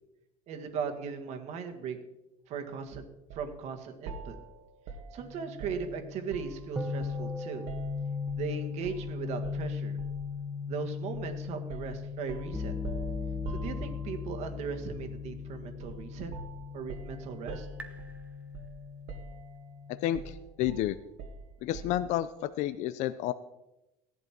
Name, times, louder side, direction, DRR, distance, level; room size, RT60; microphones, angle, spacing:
voice 1, 0.5-2.0 2.5-3.1 3.3-4.4 5.1-7.6 8.4-10.0 10.7-12.7 13.5-16.3 16.7-17.7, right 6 dB, 50° right, 5 dB, 1.8 m, -38 dB
sound 1, 3.3-3.5 4.1-6.7 7.0-8.5 8.8-9.1 9.4-10.3 11.1-11.3 11.7-14.3 15.8-16.1 16.3-18.8 19.1-19.7 20.1-22.1, right 4 dB, 70° right, 1.9 m, -44 dB
sound 2, 5.2-20.3, left 5 dB, 10° right, 1.1 m, -38 dB
voice 2, 19.9-21.0 21.6-23.3, left 13 dB, 55° left, 13 dB, 0.5 m, -31 dB
16.0 x 11.0 x 4.5 m, 0.95 s
cardioid pair, 155°, 14 cm